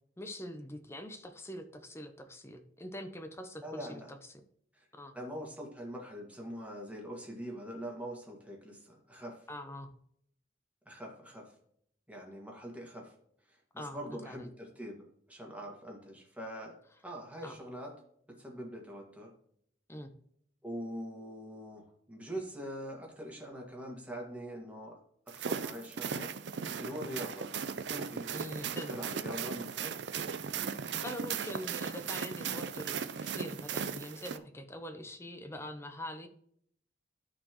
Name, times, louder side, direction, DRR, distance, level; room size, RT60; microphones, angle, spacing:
voice 1, 0.2-4.4 5.0-5.1 9.5-9.9 13.8-14.5 17.4-17.6 19.9-20.1 28.3-29.0 31.0-36.3, left 1 dB, 15° left, 7 dB, 0.8 m, -44 dB
voice 2, 3.6-4.1 4.7-4.9 5.1-9.4 10.9-11.5 12.1-13.1 13.5-16.8 17.0-17.9 18.3-19.3 20.6-25.0 25.4-26.3 26.8-27.5 27.9-28.3 28.9-29.9, equal, 10° right, -1 dB, 1.8 m, -43 dB
sound 1, 25.3-34.4, right 6 dB, 80° right, 0.5 m, -37 dB
12.5 x 4.4 x 3.0 m, 0.66 s
head